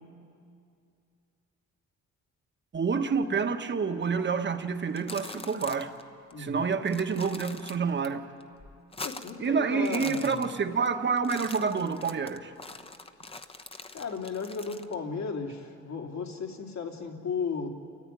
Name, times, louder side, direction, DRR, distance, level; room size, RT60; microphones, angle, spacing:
voice 1, 2.7-5.9 6.4-8.2 9.4-12.5, right 5 dB, 35° right, 1.5 m, -28 dB
sound 1, 4.8-6.0 6.3-6.4 6.7-8.1 8.4-9.5 9.7-10.9 11.2-14.9, left 3 dB, 20° left, 1.0 m, -43 dB
voice 2, 6.3-6.7 9.0-10.5 13.9-17.7, left 5 dB, 65° left, 3.0 m, -35 dB
29.5 x 14.0 x 9.9 m
cardioid pair, 90°, 30 cm